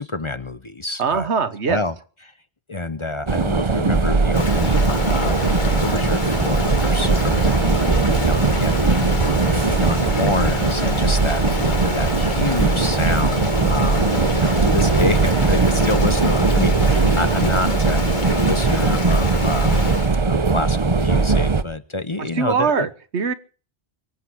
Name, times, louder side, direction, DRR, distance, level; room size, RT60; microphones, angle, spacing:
voice 1, 0.0-1.3 1.7-1.9 2.2-2.3 2.7-8.8 9.1-19.9 20.2-22.9, left 2 dB, 30° left, 12 dB, 0.8 m, -28 dB
voice 2, 1.0-1.8 22.3-23.3, right 5 dB, 85° right, 12 dB, 1.5 m, -22 dB
Inside old train atmo, 3.3-21.6, right 4 dB, 30° right, 0.8 m, -19 dB
Rain, 4.3-20.2, left 4 dB, 45° left, 1.5 m, -28 dB
24.0 x 8.2 x 6.2 m, 0.39 s
omnidirectional pair, 1.1 m